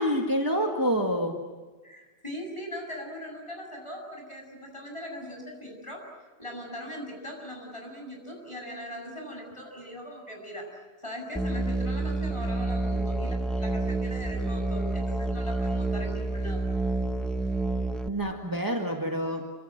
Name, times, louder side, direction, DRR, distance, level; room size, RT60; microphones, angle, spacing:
voice 1, 0.0-1.4 18.1-19.5, equal, 20° right, 2 dB, 1.9 m, -27 dB
voice 2, 1.8-6.0 6.4-16.6, equal, 30° left, 1 dB, 7.8 m, -40 dB
Musical instrument, 11.4-18.1, right 2 dB, ahead, 1.3 m, -29 dB
29.5 x 26.5 x 7.7 m, 1.3 s
omnidirectional pair, 1.1 m